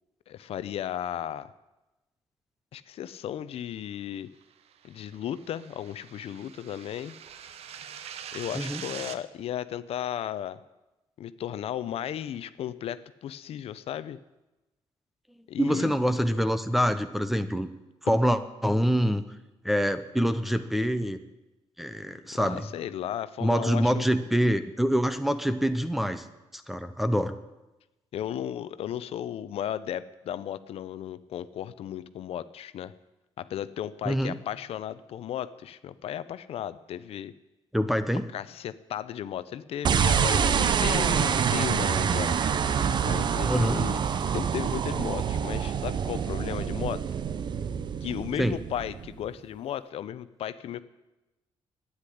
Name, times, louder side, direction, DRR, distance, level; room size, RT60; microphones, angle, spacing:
voice 1, 0.3-1.5 2.7-4.3 4.8-7.1 8.3-10.6 11.2-14.2 15.5-15.9 22.3-24.1 28.1-32.9 33.4-37.3 38.3-42.4 43.0-44.0 44.3-47.0 48.0-50.8, left 10 dB, 75° left, 14 dB, 0.6 m, -35 dB
sound 1, 4.7-9.2, right 8 dB, 80° right, 0.9 m, -43 dB
voice 2, 15.6-17.7 18.0-19.2 19.6-21.2 21.8-22.7 23.4-26.3 26.5-27.3 34.0-34.4 37.7-38.3 43.4-43.8 48.4-48.6, equal, ahead, 11 dB, 0.8 m, -25 dB
sound 2, 39.8-49.2, right 7 dB, 45° right, 0.7 m, -26 dB
12.0 x 9.7 x 10.0 m, 1.0 s
cardioid pair, 150°, 10 cm